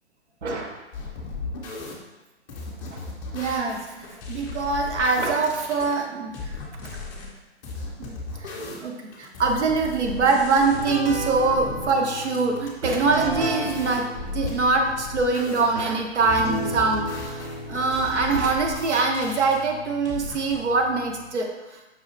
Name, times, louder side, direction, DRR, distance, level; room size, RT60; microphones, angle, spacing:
voice 1, 0.4-0.8 2.9-3.0 3.3-6.3 8.0-8.2 8.4-14.1 14.3-21.5, right 3 dB, 80° right, 2 dB, 0.8 m, -24 dB
sound 1, 0.9-1.9 2.5-5.9 6.3-7.3 7.6-8.9 9.1-10.8 11.1-11.9 12.2-15.7 16.2-19.6 20.1-20.6, left 4 dB, 20° left, 0.5 m, -36 dB
sound 2, 10.6-21.3, right 2 dB, 60° right, 1.3 m, -35 dB
5.4 x 2.4 x 3.1 m, 1.1 s
hypercardioid pair, 140°, 34 cm